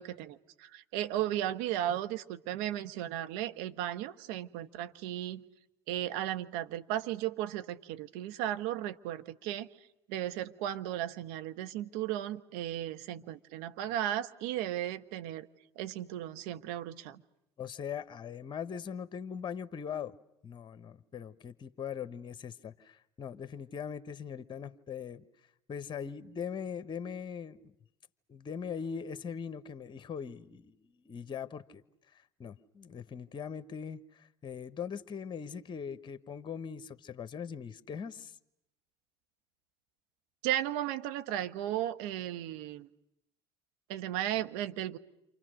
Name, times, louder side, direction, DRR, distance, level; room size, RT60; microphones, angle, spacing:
voice 1, 0.0-5.4 5.9-9.7 10.1-15.5 15.8-17.2 40.4-42.9 43.9-45.0, right 12 dB, 65° right, 10 dB, 1.1 m, -35 dB
voice 2, 17.6-20.2 20.4-25.3 25.7-27.7 28.3-38.4, left 7 dB, 35° left, 13 dB, 1.2 m, -41 dB
28.5 x 27.0 x 6.4 m, 0.81 s
figure-of-eight pair, 60°, 14 cm